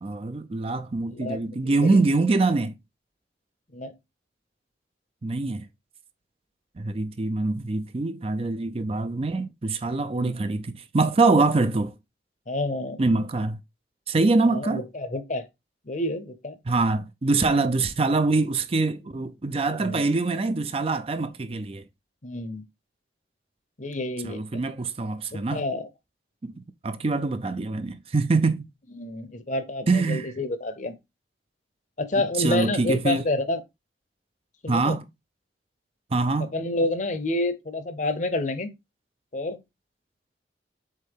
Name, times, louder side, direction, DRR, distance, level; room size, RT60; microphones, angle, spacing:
voice 1, 0.0-2.7 5.2-5.7 6.8-11.9 13.0-13.6 14.1-14.8 16.7-21.8 24.2-25.7 26.4-26.5 26.8-28.6 29.9-30.3 32.2-33.3 34.7-35.0 36.1-36.5, right 3 dB, 35° right, 0.4 m, -24 dB
voice 2, 1.1-2.0 3.7-3.9 10.1-10.3 12.5-13.0 14.5-15.5 15.9-16.5 19.8-20.0 22.2-22.6 23.8-24.4 25.3-25.9 29.0-31.0 32.0-33.6 34.6-35.0 36.5-38.7 39.3-39.6, left 2 dB, 45° left, 0.8 m, -29 dB
7.4 x 3.7 x 3.6 m
head